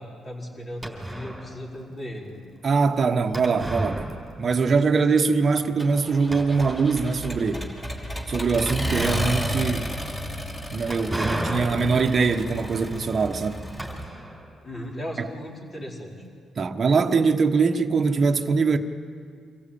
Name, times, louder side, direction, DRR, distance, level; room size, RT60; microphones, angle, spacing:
voice 1, 0.0-2.3 14.6-16.1, equal, 30° left, 4.7 m, -36 dB
sound 1, 0.8-1.6 3.3-4.7 5.0-5.1 5.7-5.8 6.3-7.2 8.7-14.6, right 1 dB, 10° right, 4.3 m, -34 dB
voice 2, 2.6-4.1 4.4-7.7 8.3-9.9 10.7-13.6 15.2-15.3 16.6-18.8, right 4 dB, 40° right, 1.3 m, -22 dB
Accelerating revving vroom, 5.8-14.1, equal, 15° left, 2.9 m, -32 dB
25.0 x 15.5 x 8.6 m
cardioid pair, 90°, 0 cm